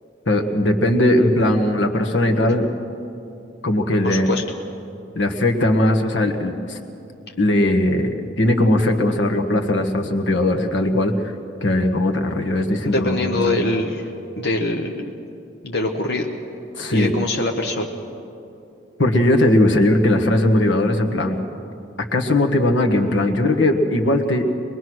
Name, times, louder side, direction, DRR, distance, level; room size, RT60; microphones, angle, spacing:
voice 1, 0.3-2.7 3.6-4.4 5.1-6.8 7.4-11.3 11.6-13.6 16.8-17.1 19.0-21.4 22.1-24.4, left 1 dB, 85° left, 4 dB, 1.6 m, -19 dB
voice 2, 4.0-4.4 12.8-14.1 14.4-15.1 15.6-16.3 16.9-17.9, left 2 dB, 60° left, 1 dB, 1.3 m, -23 dB
23.5 x 21.5 x 6.3 m, 2.7 s
head